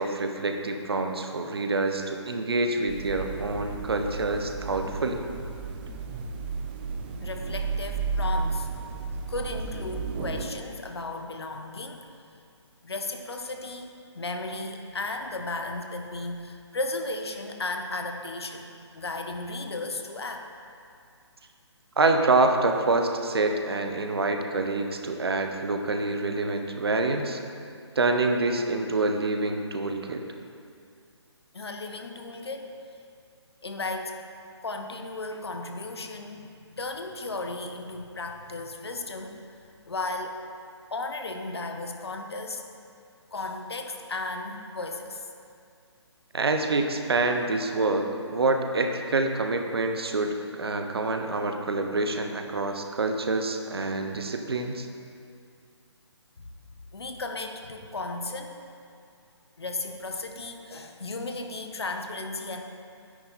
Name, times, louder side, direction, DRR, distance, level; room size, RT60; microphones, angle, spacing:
voice 1, 0.0-5.2 7.1-7.2 22.0-27.4 27.9-30.2 46.3-54.9, right 3 dB, 60° right, 5 dB, 1.2 m, -26 dB
sound 1, 2.9-10.5, right 4 dB, 20° right, 0.7 m, -33 dB
voice 2, 7.2-8.7 9.3-12.1 12.8-20.5 31.5-32.7 33.6-34.2 34.6-39.6 39.9-40.4 40.9-42.6 43.3-45.3 56.4-56.5 56.9-58.6 59.6-62.6, left 2 dB, 60° left, 4 dB, 1.4 m, -35 dB
12.5 x 10.0 x 4.3 m, 2.3 s
figure-of-eight pair, 145°, 15 cm